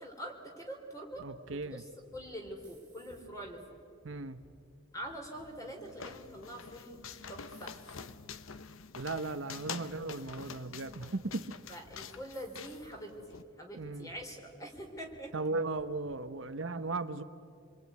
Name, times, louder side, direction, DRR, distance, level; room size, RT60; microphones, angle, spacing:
voice 1, 0.0-3.8 4.9-7.0 7.3-7.7 11.7-15.3, equal, 15° left, 3 dB, 3.5 m, -45 dB
sound 1, 1.1-1.7 2.1-2.7 3.0-3.7 4.0-4.6 5.0-5.5 5.9-6.6 6.9-7.6 7.9-8.5 8.9-9.4 9.8-10.5 10.8-11.4 11.8-12.3 12.8-13.4 13.7-14.3 14.7-15.3 15.7-16.3, equal, 55° left, 3.9 m, -62 dB
voice 2, 1.2-1.8 4.0-4.4 8.9-11.6 13.7-14.1 15.3-17.2, right 3 dB, 60° right, 10 dB, 0.9 m, -37 dB
sound 2, 1.7-3.5 4.1-4.6 6.6-7.0 7.5-8.2 8.9-9.2 9.6-9.7 11.6-12.0 12.3-12.9, right 5 dB, 10° right, 4.0 m, -64 dB
sound 3, 5.3-13.4, left 6 dB, 70° left, 0.9 m, -47 dB
27.0 x 22.5 x 9.4 m, 2.5 s
head